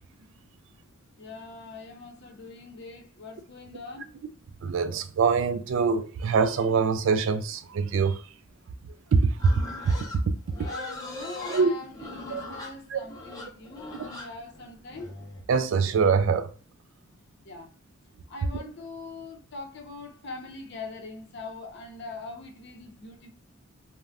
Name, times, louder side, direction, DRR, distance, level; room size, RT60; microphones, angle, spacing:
voice 1, 1.2-4.1 10.5-15.1 17.4-17.7 18.3-23.3, left 3 dB, 55° left, 0.6 m, -42 dB
voice 2, 4.6-8.2 9.1-9.5 9.9-10.0 11.5-11.7 12.3-12.4 12.9-13.0 15.5-16.5, right 5 dB, 65° right, 0.3 m, -23 dB
Livestock farm animals working animals, 9.4-15.4, left 2 dB, 20° left, 0.6 m, -40 dB
2.4 x 2.1 x 3.3 m
head